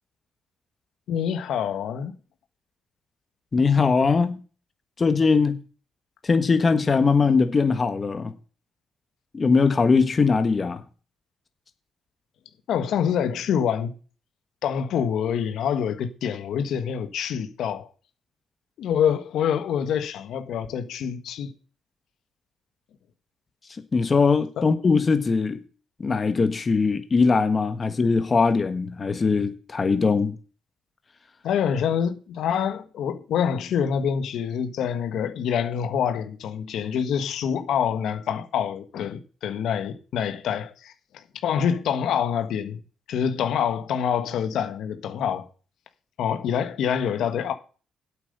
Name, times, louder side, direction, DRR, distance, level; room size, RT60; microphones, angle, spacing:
voice 1, 1.1-2.1 12.7-13.9 14.6-17.9 18.8-21.5 24.6-24.7 31.4-42.8 43.1-45.5 46.2-47.5, left 8 dB, 75° left, 1.4 m, -26 dB
voice 2, 3.5-4.4 5.0-5.6 6.2-8.3 9.3-10.8 23.9-25.6 26.0-30.3, left 4 dB, 35° left, 1.5 m, -21 dB
8.9 x 8.4 x 6.7 m
cardioid pair, 90°, 0 cm